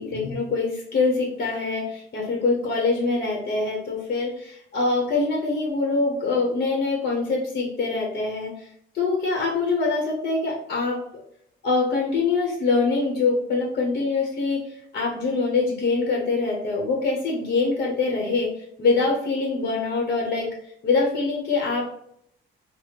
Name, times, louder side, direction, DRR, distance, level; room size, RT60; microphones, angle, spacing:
voice 1, 0.0-8.7 8.9-11.0 11.6-14.6 14.9-18.5 18.8-20.6 20.8-21.9, left 3 dB, 55° left, 0 dB, 1.0 m, -24 dB
4.0 x 2.1 x 3.1 m, 0.68 s
cardioid pair, 90°, 20 cm